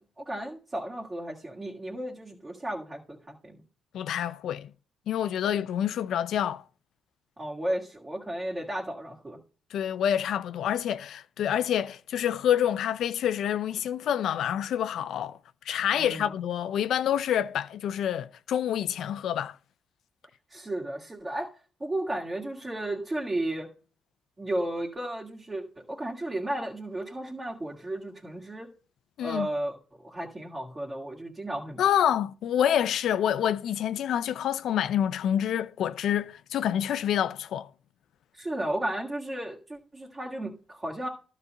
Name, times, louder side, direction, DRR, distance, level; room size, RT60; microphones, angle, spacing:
voice 1, 0.2-3.6 7.4-9.4 16.0-16.3 20.5-21.5 21.8-23.7 24.4-25.6 25.9-28.7 29.2-29.8 30.0-31.8 38.4-41.1, right 1 dB, 20° right, 2.2 m, -34 dB
voice 2, 3.9-4.7 5.1-6.6 9.7-15.4 15.7-19.6 29.2-29.5 31.8-37.7, left 10 dB, 75° left, 0.5 m, -27 dB
12.0 x 4.2 x 6.6 m
cardioid pair, 90°, 0 cm